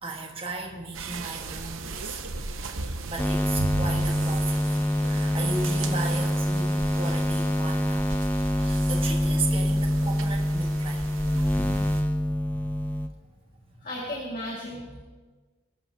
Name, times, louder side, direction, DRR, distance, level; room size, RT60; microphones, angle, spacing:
voice 1, 0.0-2.2 2.8-8.1 8.6-11.3 11.5-12.7, right 3 dB, 30° right, 0 dB, 1.5 m, -36 dB
sound 1, 0.9-12.0, right 3 dB, 90° right, 0.9 m, -36 dB
sound 2, 3.2-13.1, equal, 10° left, 0.5 m, -25 dB
voice 2, 13.8-15.0, left 1 dB, 40° left, -4 dB, 2.1 m, -35 dB
21.0 x 12.5 x 2.9 m, 1.3 s
head